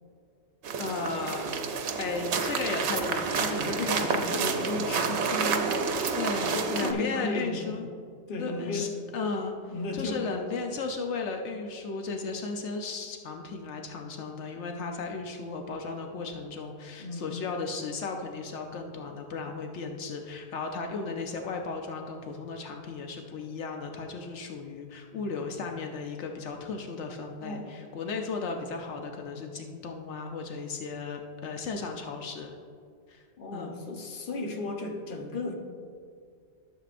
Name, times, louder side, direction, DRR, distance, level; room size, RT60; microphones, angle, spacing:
sound 1, 0.6-6.9, right 5 dB, 75° right, 1.0 m, -29 dB
voice 1, 0.8-1.4 2.0-4.2 6.1-7.9 8.4-9.5 9.9-32.5 33.1-33.2 33.5-33.7, left 4 dB, 80° left, 3 dB, 1.0 m, -35 dB
voice 2, 3.4-5.7 6.5-7.8 8.3-8.9 9.7-10.3 17.0-17.3 27.4-27.8 33.4-35.5, left 3 dB, 50° left, 2 dB, 1.1 m, -34 dB
13.0 x 7.3 x 2.5 m, 2.2 s
omnidirectional pair, 1.2 m